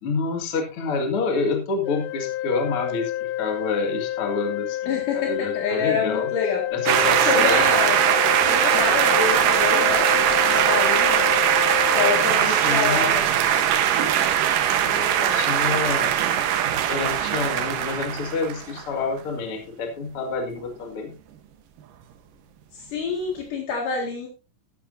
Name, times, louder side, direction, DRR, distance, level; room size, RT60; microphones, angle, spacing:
voice 1, 0.0-6.3 6.7-7.6 12.4-13.2 14.9-16.2 16.9-21.1, left 4 dB, 45° left, 3 dB, 2.7 m, -28 dB
Organ, 1.8-12.9, left 14 dB, 85° left, 1.4 m, -29 dB
voice 2, 4.9-6.6 7.2-8.0 8.4-10.1 10.5-11.3 11.9-13.2 14.8-15.5 22.7-24.3, left 5 dB, 70° left, 0 dB, 3.6 m, -27 dB
sound 1, 6.9-18.9, right 10 dB, 80° right, 2.8 m, -20 dB
14.5 x 11.5 x 2.7 m, 0.29 s
omnidirectional pair, 3.9 m